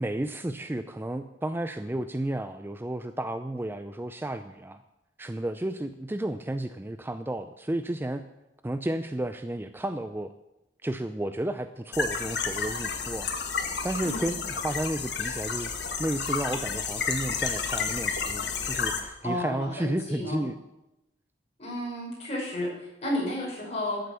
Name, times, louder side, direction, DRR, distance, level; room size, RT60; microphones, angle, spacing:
voice 1, 0.0-4.8 5.2-8.2 8.6-10.3 10.8-13.3 13.8-15.7 16.0-20.6, right 1 dB, 10° right, 10 dB, 0.4 m, -32 dB
sound 1, 11.9-19.0, left 5 dB, 65° left, 1.5 m, -31 dB
voice 2, 19.2-20.4 21.6-24.0, left 1 dB, 35° left, -4 dB, 6.0 m, -32 dB
13.5 x 7.8 x 6.9 m, 0.91 s
head